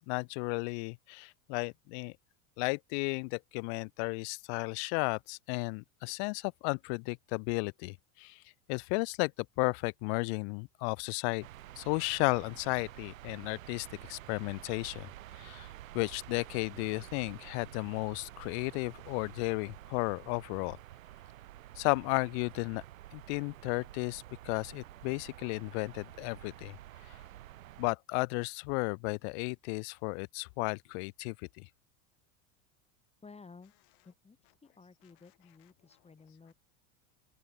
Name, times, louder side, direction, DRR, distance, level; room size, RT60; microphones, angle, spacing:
voice 1, 0.1-2.1 2.6-8.4 8.7-9.3 9.6-11.5 11.8-15.1 15.4-15.7 15.9-20.8 21.8-22.8 23.1-26.8 27.8-31.7, left 36 dB, 55° left, 0.5 m, -34 dB
sound 1, 11.4-28.0, right 13 dB, 85° right, 2.1 m, -50 dB
voice 2, 33.2-33.7 34.0-36.5, left 4 dB, 15° left, 3.2 m, -55 dB
open air
hypercardioid pair, 105°, 39 cm